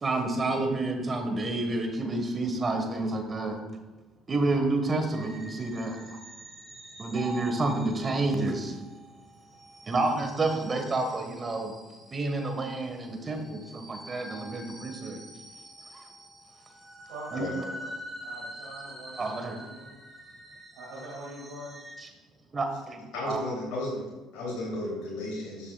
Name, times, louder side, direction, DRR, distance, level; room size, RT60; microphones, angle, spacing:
voice 1, 0.0-3.6 4.3-6.2 7.0-8.8 9.9-11.8 12.1-15.2 15.9-16.0 17.3-17.4 19.2-19.6 22.5-23.4, right 2 dB, 35° right, 4 dB, 1.5 m, -29 dB
sound 1, 5.1-22.0, equal, 10° right, 2.5 m, -47 dB
voice 2, 17.1-17.9 18.2-19.9 20.7-21.8, right 1 dB, 70° right, -5 dB, 2.3 m, -43 dB
voice 3, 23.1-25.7, left 1 dB, 70° left, -5 dB, 3.1 m, -34 dB
13.0 x 7.3 x 2.4 m, 1.2 s
hypercardioid pair, 60°, 0 cm